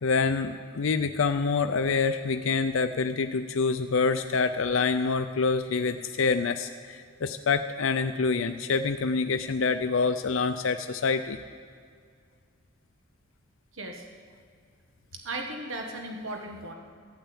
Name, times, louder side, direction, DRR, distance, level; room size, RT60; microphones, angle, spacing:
voice 1, 0.0-11.4, left 4 dB, 75° left, 9 dB, 0.5 m, -26 dB
voice 2, 13.7-14.0 15.1-16.7, right 2 dB, 80° right, 2 dB, 1.6 m, -36 dB
14.0 x 8.9 x 8.7 m, 2.1 s
head